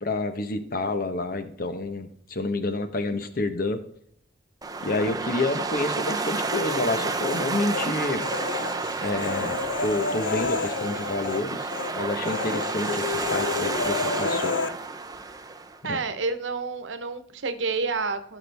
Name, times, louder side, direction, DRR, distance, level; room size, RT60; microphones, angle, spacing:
voice 1, 0.0-3.8 4.8-8.2 9.0-14.5 15.8-16.0, left 2 dB, 50° left, 9 dB, 1.1 m, -29 dB
sound 1, 4.6-15.8, right 3 dB, 20° right, 0.6 m, -30 dB
Human voice, 6.7-7.9 8.2-11.4 11.7-11.9 12.2-14.7, left 4 dB, 80° left, 0.6 m, -30 dB
voice 2, 15.8-18.4, right 4 dB, 90° right, 10 dB, 1.0 m, -29 dB
16.0 x 6.1 x 3.4 m, 0.67 s
head